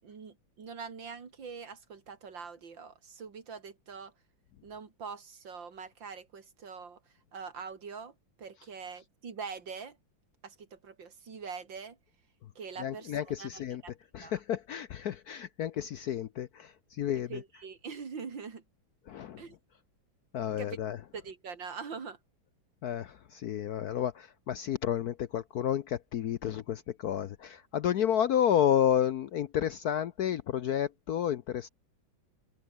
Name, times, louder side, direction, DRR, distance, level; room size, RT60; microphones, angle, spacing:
voice 1, 0.0-4.1 4.6-7.0 7.3-10.0 10.4-12.0 12.5-13.9 14.2-14.4 17.3-18.6 19.4-19.5 20.6-20.8 21.1-22.2, right 5 dB, 65° right, 3.2 m, -43 dB
voice 2, 12.8-13.8 14.1-17.4 19.1-19.4 20.3-21.0 22.8-31.7, left 10 dB, 65° left, 1.0 m, -31 dB
open air
omnidirectional pair, 2.2 m